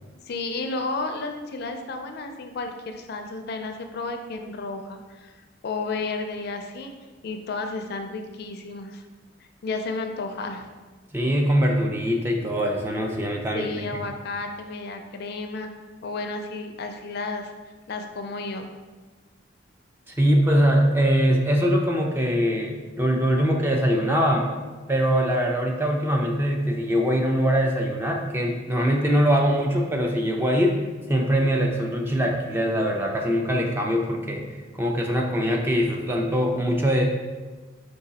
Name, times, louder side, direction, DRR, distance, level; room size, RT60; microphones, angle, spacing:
voice 1, 0.2-5.4 5.6-6.9 7.2-9.0 9.6-10.7 13.5-15.7 16.0-18.7, left 3 dB, 55° left, 5 dB, 0.4 m, -32 dB
voice 2, 11.1-14.0 20.1-24.5 24.9-30.8 31.1-34.4 34.8-37.0, equal, 10° right, 1 dB, 0.4 m, -22 dB
4.9 x 2.3 x 4.0 m, 1.3 s
head